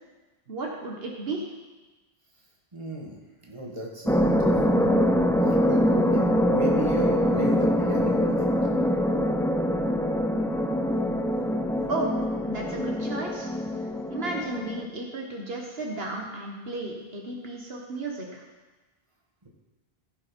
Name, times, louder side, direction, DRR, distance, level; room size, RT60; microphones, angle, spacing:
voice 1, 0.5-1.5 11.9-12.1 12.5-13.5 13.8-18.4, right 2 dB, 70° right, 0 dB, 1.5 m, -34 dB
voice 2, 2.7-5.0 5.5-8.8, right 1 dB, 30° right, -2 dB, 1.8 m, -35 dB
sound 1, 4.1-14.9, equal, 5° left, 0.3 m, -24 dB
15.5 x 5.7 x 5.2 m, 1.2 s
omnidirectional pair, 1.0 m